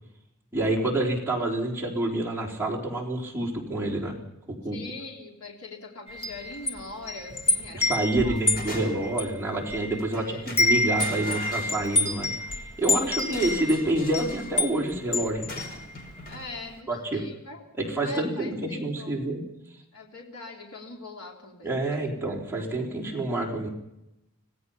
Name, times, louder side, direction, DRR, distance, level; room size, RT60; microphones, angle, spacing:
voice 1, 0.5-4.2 4.6-4.8 7.7-12.3 12.8-15.5 16.9-17.2 17.8-19.4 21.6-23.7, right 2 dB, 10° right, -2 dB, 4.1 m, -28 dB
voice 2, 4.7-8.4 10.1-10.5 12.9-13.2 16.3-17.6 18.0-19.2 19.9-22.1, left 2 dB, 85° left, 0 dB, 3.7 m, -42 dB
Wind chime, 6.1-10.1 10.4-16.3, left 2 dB, 25° left, 1.9 m, -28 dB
sound 1, 7.3-7.7 8.1-9.2 10.0-10.2 10.5-12.3 13.2-14.6 15.5-16.5, left 1 dB, 45° left, 4.9 m, -40 dB
26.0 x 17.5 x 5.7 m, 0.90 s
head